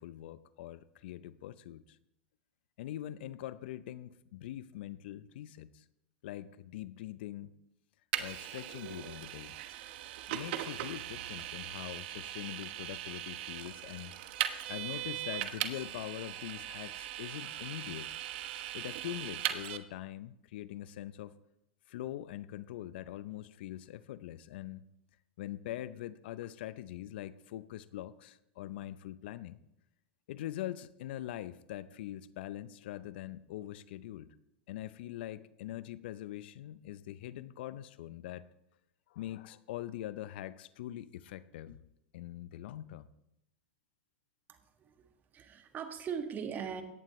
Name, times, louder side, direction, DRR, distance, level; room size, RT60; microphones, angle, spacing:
voice 1, 0.0-2.0 2.8-5.8 6.2-7.5 8.2-9.5 10.3-14.1 14.7-18.1 18.7-21.3 21.9-24.9 25.4-29.6 30.3-34.3 34.7-38.4 39.1-41.8 42.1-43.1, left 13 dB, 65° left, 16 dB, 0.6 m, -43 dB
Vehicle, 8.1-19.8, right 12 dB, 65° right, 1.1 m, -39 dB
voice 2, 44.5-45.1 45.3-46.8, right 7 dB, 30° right, 7 dB, 1.7 m, -40 dB
17.0 x 11.5 x 3.2 m, 0.84 s
hypercardioid pair, 105°, 6 cm